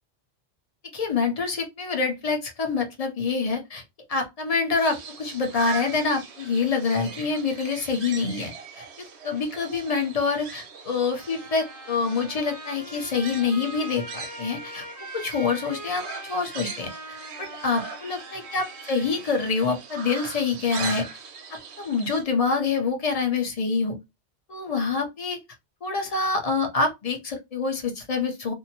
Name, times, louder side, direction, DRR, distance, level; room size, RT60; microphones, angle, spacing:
voice 1, 0.9-3.8 4.1-8.9 9.2-14.9 15.1-21.0 21.5-24.0 24.5-25.4 25.8-28.5, left 4 dB, 40° left, 0.7 m, -26 dB
sound 1, 4.7-22.2, right 5 dB, 80° right, 0.9 m, -40 dB
Trumpet, 11.1-19.3, right 1 dB, 20° right, 0.5 m, -42 dB
2.7 x 2.0 x 2.8 m
omnidirectional pair, 1.1 m